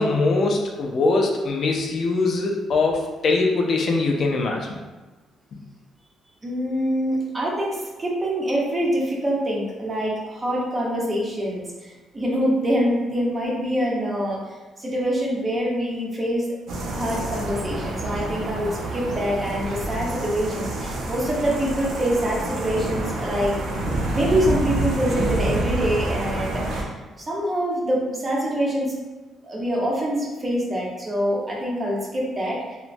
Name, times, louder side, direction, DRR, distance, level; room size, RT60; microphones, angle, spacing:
voice 1, 0.0-4.8, left 3 dB, 60° left, 1 dB, 0.4 m, -22 dB
voice 2, 6.4-14.4 14.8-16.5 16.9-23.6 24.1-28.9 29.4-32.8, equal, 25° right, -4 dB, 0.8 m, -25 dB
sound 1, 16.7-26.8, right 1 dB, 75° right, 0.5 m, -28 dB
3.0 x 2.1 x 2.5 m, 1.2 s
cardioid pair, 90°, 0 cm